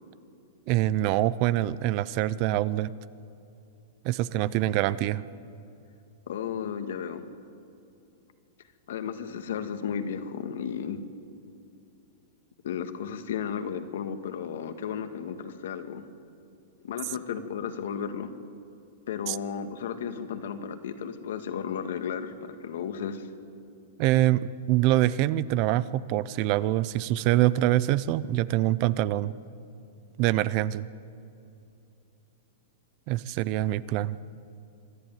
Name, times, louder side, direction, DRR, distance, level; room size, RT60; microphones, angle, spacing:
voice 1, 0.7-2.9 4.0-5.2 19.3-19.4 24.0-29.3 30.2-30.9 33.1-34.2, right 14 dB, 35° right, 18 dB, 0.5 m, -25 dB
voice 2, 6.3-7.3 8.9-11.0 12.6-16.0 16.8-18.3 19.1-23.3, left 7 dB, 70° left, 8 dB, 1.8 m, -34 dB
25.5 x 11.5 x 9.3 m, 2.6 s
supercardioid pair, 160°, 0 cm